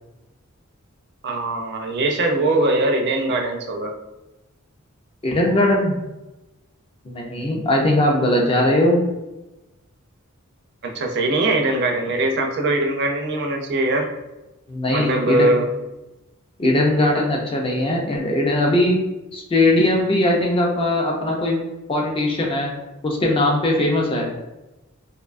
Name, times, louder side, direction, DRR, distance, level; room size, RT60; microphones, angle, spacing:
voice 1, 1.2-3.9 10.8-14.1 14.9-15.7, right 2 dB, 50° right, 2 dB, 0.4 m, -21 dB
voice 2, 5.2-6.0 7.1-9.0 14.7-15.5 16.6-19.0 19.3-21.6 21.9-22.7 23.0-24.3, left 1 dB, 25° left, 0 dB, 0.4 m, -20 dB
2.5 x 2.2 x 2.4 m, 1.0 s
head